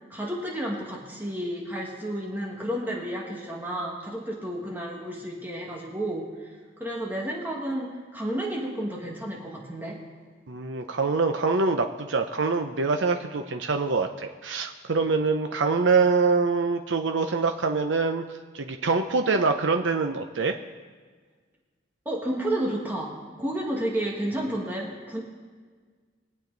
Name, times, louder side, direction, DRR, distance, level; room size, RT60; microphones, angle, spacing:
voice 1, 0.1-6.5 6.8-10.0 22.1-23.1 23.4-25.2, right 1 dB, 10° right, -3 dB, 1.8 m, -31 dB
voice 2, 10.5-18.2 18.5-20.6, right 4 dB, 90° right, 5 dB, 0.7 m, -24 dB
23.0 x 8.5 x 4.0 m, 1.5 s
head